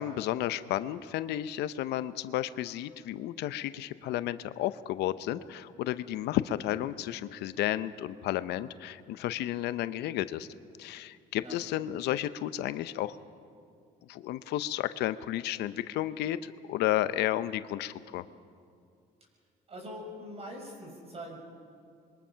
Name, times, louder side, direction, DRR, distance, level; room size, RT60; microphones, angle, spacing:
voice 1, 0.0-10.5 10.8-13.2 14.1-18.3, left 13 dB, 80° left, 13 dB, 0.7 m, -32 dB
voice 2, 19.7-21.4, equal, 35° right, 1 dB, 6.2 m, -43 dB
26.5 x 22.5 x 5.7 m, 2.4 s
cardioid pair, 110°, 17 cm